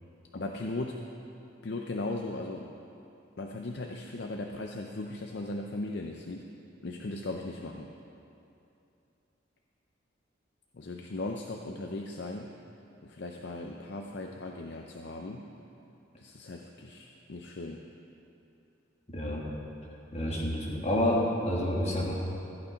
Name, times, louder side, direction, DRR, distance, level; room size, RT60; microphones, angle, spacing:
voice 1, 0.3-1.1 1.6-2.7 3.4-6.5 6.8-7.9 10.7-12.5 13.0-15.5 16.2-17.8, left 2 dB, 60° left, 2 dB, 0.6 m, -37 dB
voice 2, 19.1-19.4 20.1-22.1, left 1 dB, 35° left, -4 dB, 1.9 m, -28 dB
14.5 x 8.4 x 5.2 m, 2.7 s
head